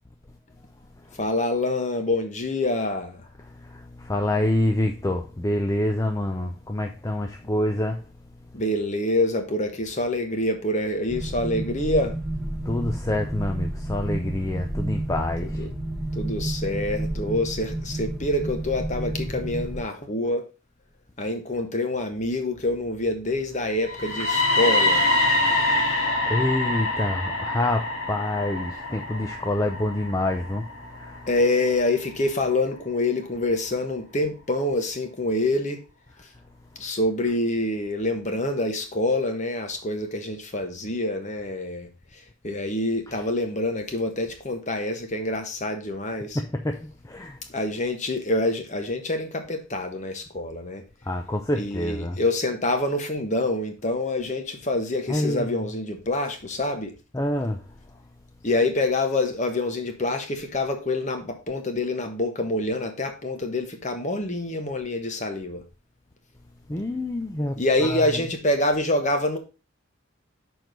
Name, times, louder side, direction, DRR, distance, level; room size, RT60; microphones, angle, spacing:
voice 1, 1.2-3.2 8.5-12.1 15.6-15.7 16.1-20.5 21.2-25.0 31.3-35.8 36.8-46.4 47.5-50.8 51.5-56.9 58.4-65.6 67.6-69.4, left 2 dB, 35° left, 1.2 m, -26 dB
voice 2, 3.7-8.0 12.7-15.6 26.3-30.7 30.9-31.3 43.1-43.2 46.3-47.4 51.1-52.2 55.1-55.5 57.1-57.6 66.7-67.5 67.8-68.2, left 1 dB, 15° left, 0.5 m, -27 dB
sound 1, 11.1-19.8, right 1 dB, ahead, 1.3 m, -31 dB
sound 2, 23.8-31.7, left 2 dB, 75° left, 2.1 m, -25 dB
6.3 x 4.6 x 5.1 m
head